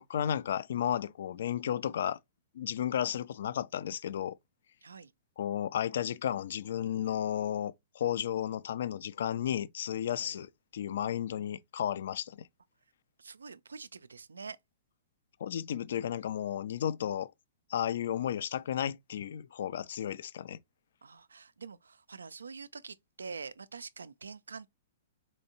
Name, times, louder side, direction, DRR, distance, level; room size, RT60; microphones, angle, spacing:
voice 1, 0.0-2.2 2.5-4.4 5.4-12.5 15.4-17.3 17.7-20.6, left 10 dB, 65° left, 0.3 m, -33 dB
voice 2, 13.2-14.6 21.0-24.7, right 5 dB, 80° right, 0.3 m, -45 dB
4.2 x 2.7 x 2.8 m
hypercardioid pair, 115°, 0 cm